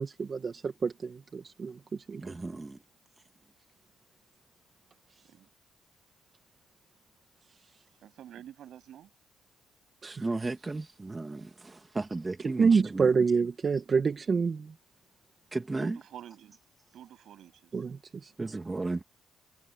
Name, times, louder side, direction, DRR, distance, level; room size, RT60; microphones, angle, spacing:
voice 1, 0.0-2.4 10.0-10.2 12.4-14.7 17.7-18.3, right 5 dB, 40° right, 1.5 m, -28 dB
voice 2, 2.2-2.8 10.0-13.1 15.5-16.0 18.4-19.0, right 3 dB, 20° right, 2.1 m, -34 dB
voice 3, 8.0-9.1 15.8-16.6 16.9-17.7, right 10 dB, 70° right, 8.0 m, -48 dB
cardioid pair, 90°, 0 cm